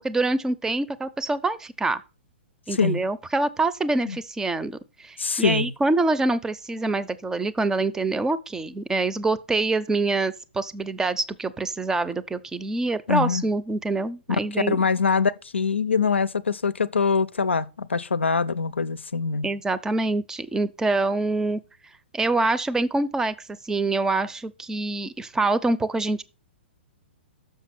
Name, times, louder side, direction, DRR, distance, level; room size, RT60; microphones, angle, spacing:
voice 1, 0.0-2.0 2.7-14.8 19.4-21.6 22.1-23.3 23.6-26.2, right 2 dB, 10° right, 0.6 m, -25 dB
voice 2, 5.2-5.7 13.1-13.4 14.7-19.5, left 5 dB, 85° left, 0.5 m, -23 dB
6.7 x 5.8 x 6.0 m
figure-of-eight pair, 115°, 6 cm